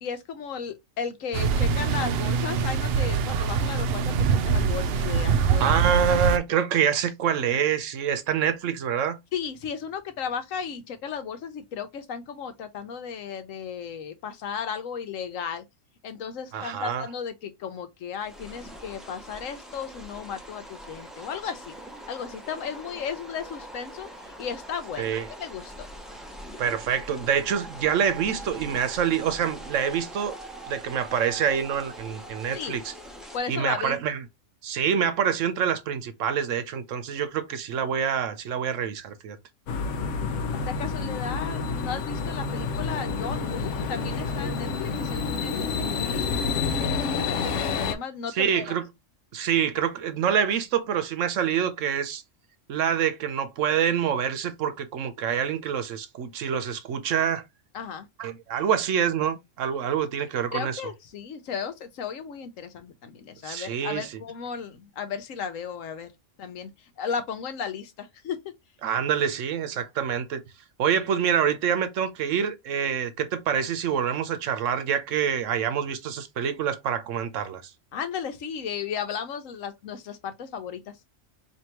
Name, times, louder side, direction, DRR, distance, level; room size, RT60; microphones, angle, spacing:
voice 1, 0.0-5.7 9.3-15.6 16.0-21.8 22.1-25.1 25.4-25.9 32.5-32.8 33.3-34.0 40.7-46.3 46.8-48.6 57.7-58.1 60.5-66.1 66.4-68.4 77.9-81.0, left 7 dB, 90° left, 1.2 m, -35 dB
sound 1, 1.3-6.4, right 6 dB, 65° right, 0.7 m, -24 dB
voice 2, 5.6-9.2 16.5-17.0 25.0-25.3 26.6-30.4 30.7-32.9 33.5-34.2 34.6-39.4 48.3-48.8 49.3-52.2 52.7-57.4 58.2-60.8 63.4-64.1 68.8-70.4 70.8-77.7, right 8 dB, 80° right, 1.1 m, -26 dB
sound 2, 18.2-33.4, right 1 dB, ahead, 0.4 m, -42 dB
sound 3, 39.7-47.9, left 5 dB, 70° left, 0.9 m, -28 dB
4.6 x 2.9 x 2.9 m
omnidirectional pair, 1.3 m